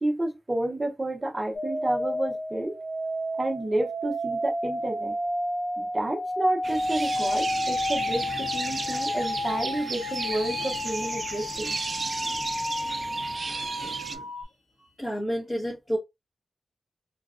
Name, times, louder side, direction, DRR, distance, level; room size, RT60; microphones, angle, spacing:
voice 1, 0.0-2.8 3.4-5.1 5.8-11.7, right 1 dB, 15° right, 0.8 m, -30 dB
sound 1, 1.5-14.4, left 1 dB, 65° left, 1.3 m, -31 dB
sound 2, 6.6-14.2, right 3 dB, 40° right, 0.4 m, -34 dB
voice 2, 13.8-14.5 14.8-16.0, equal, 20° left, 0.9 m, -32 dB
3.8 x 2.3 x 2.4 m
wide cardioid pair, 150°, 0 cm